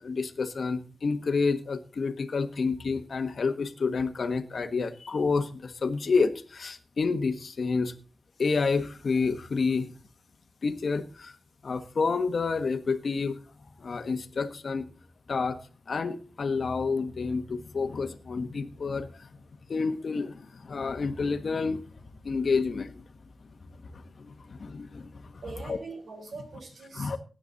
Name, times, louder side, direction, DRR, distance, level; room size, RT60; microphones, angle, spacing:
voice 1, 0.0-7.9 8.4-9.9 10.6-11.3 11.6-13.4 13.8-14.8 15.3-15.6 15.9-19.3 19.7-21.8 22.2-23.0 23.8-25.8 26.9-27.2, left 4 dB, 65° left, 1.4 m, -29 dB
voice 2, 25.4-27.2, right 4 dB, 80° right, 4.2 m, -42 dB
16.5 x 9.3 x 4.1 m
wide cardioid pair, 90°, 0 cm